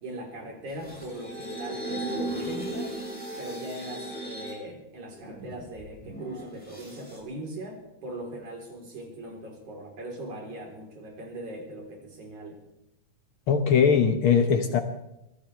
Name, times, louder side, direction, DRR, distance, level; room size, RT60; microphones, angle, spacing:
voice 1, 0.0-3.0 3.4-12.6, right 1 dB, 60° right, 1 dB, 5.2 m, -40 dB
sound 1, 0.7-4.6 5.1-7.2, right 1 dB, ahead, 5.4 m, -36 dB
voice 2, 13.5-14.8, left 6 dB, 70° left, 7 dB, 1.3 m, -21 dB
23.0 x 17.0 x 3.4 m, 0.89 s
omnidirectional pair, 3.8 m